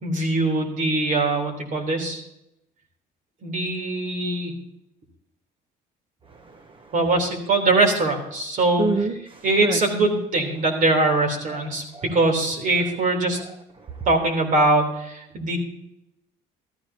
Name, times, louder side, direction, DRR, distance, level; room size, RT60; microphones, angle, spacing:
voice 1, 0.0-2.2 3.4-4.5 6.9-8.9 9.4-11.8 12.1-13.4 14.1-15.6, right 2 dB, 50° right, 3 dB, 3.6 m, -22 dB
voice 2, 6.3-6.9 8.8-9.8 11.7-12.1 13.8-14.1, right 3 dB, 30° right, 7 dB, 0.9 m, -29 dB
15.0 x 14.0 x 2.9 m, 0.85 s
cardioid pair, 110°, 17 cm